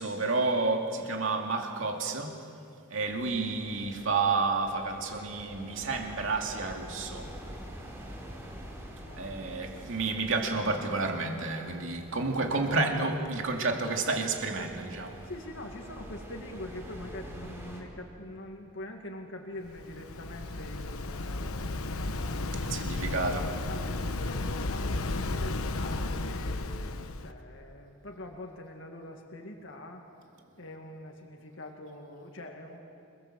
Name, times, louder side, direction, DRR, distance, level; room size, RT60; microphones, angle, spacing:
voice 1, 0.0-2.3 2.9-7.3 9.2-15.2 22.6-23.4, right 3 dB, 65° right, 2 dB, 2.6 m, -30 dB
sound 1, 3.0-17.8, equal, 10° right, 4.1 m, -47 dB
voice 2, 9.0-9.7 15.2-26.7 27.2-30.1 30.6-32.8, left 1 dB, 60° left, 2 dB, 2.1 m, -44 dB
Waves surf, 19.6-27.3, left 2 dB, 90° left, 1.0 m, -33 dB
29.0 x 20.0 x 7.6 m, 2.6 s
head